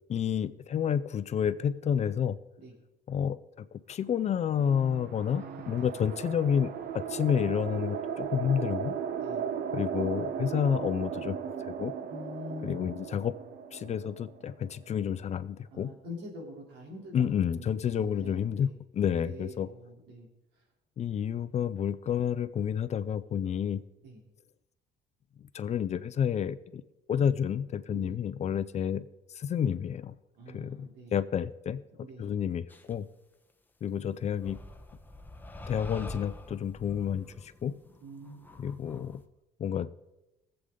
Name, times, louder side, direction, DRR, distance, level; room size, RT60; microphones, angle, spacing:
voice 1, 0.1-2.4 3.1-9.0 9.7-11.4 11.7-11.9 12.6-13.3 13.7-15.9 17.1-19.7 21.0-23.8 25.5-26.8 27.1-29.0 29.3-30.1 30.5-31.8 32.2-33.1 33.8-34.6 35.7-37.8 38.6-39.2 39.6-39.9, left 8 dB, 40° left, 14 dB, 0.5 m, -30 dB
sound 1, 4.4-14.9, right 7 dB, 65° right, 0.9 m, -36 dB
voice 2, 4.6-6.0 9.2-9.4 12.1-12.9 15.7-18.8 19.1-20.3 24.0-24.2 27.9-28.2 30.4-31.2 32.0-32.3 38.0-38.5, equal, 80° right, 0 dB, 3.5 m, -45 dB
sound 2, 32.7-32.9 34.4-39.2, left 2 dB, 10° left, 1.0 m, -45 dB
19.5 x 7.9 x 3.9 m, 0.95 s
cardioid pair, 110°, 17 cm